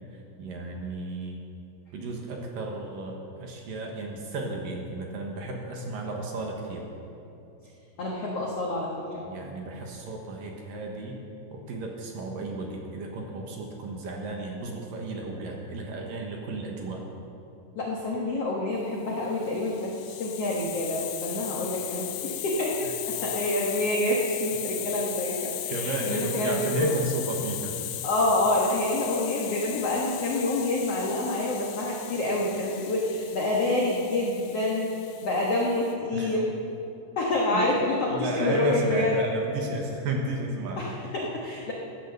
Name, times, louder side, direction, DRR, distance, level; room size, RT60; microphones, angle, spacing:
voice 1, 0.1-1.4 1.9-6.9 9.2-11.2 11.5-17.0 22.8-22.9 25.7-27.7 36.1-36.4 37.5-37.6 38.1-40.9, right 2 dB, 65° right, 0 dB, 2.6 m, -33 dB
voice 2, 8.0-9.2 17.7-26.9 28.0-34.9 35.2-36.5 37.2-39.1 40.8-41.7, left 2 dB, 65° left, -3 dB, 1.5 m, -27 dB
Hiss, 19.3-35.9, left 12 dB, 85° left, 3.0 m, -37 dB
15.5 x 10.0 x 6.7 m, 2.7 s
omnidirectional pair, 4.9 m